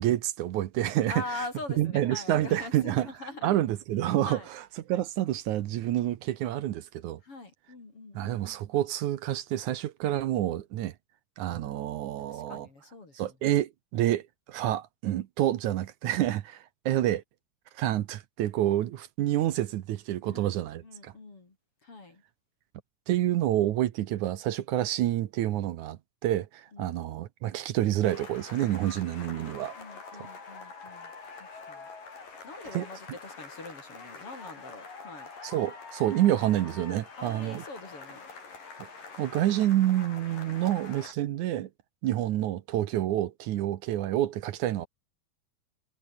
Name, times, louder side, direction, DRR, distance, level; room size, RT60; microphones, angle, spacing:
voice 1, 0.0-1.1 1.8-3.1 3.4-4.4 4.9-7.2 8.1-10.9 11.4-12.7 13.2-17.2 17.7-21.1 23.1-29.7 30.1-30.3 32.7-32.9 35.4-37.6 39.2-41.7 42.0-44.9, right 13 dB, 70° right, 2.3 m, -28 dB
voice 2, 1.1-3.5 4.2-4.5 7.2-8.3 12.3-13.4 20.2-21.6 21.8-22.2 26.7-27.3 29.1-29.4 29.8-31.1 31.4-31.9 32.4-35.3 37.2-38.3, left 2 dB, 40° left, 5.5 m, -43 dB
sound 1, 28.0-41.1, left 4 dB, 80° left, 7.9 m, -45 dB
omnidirectional pair, 3.8 m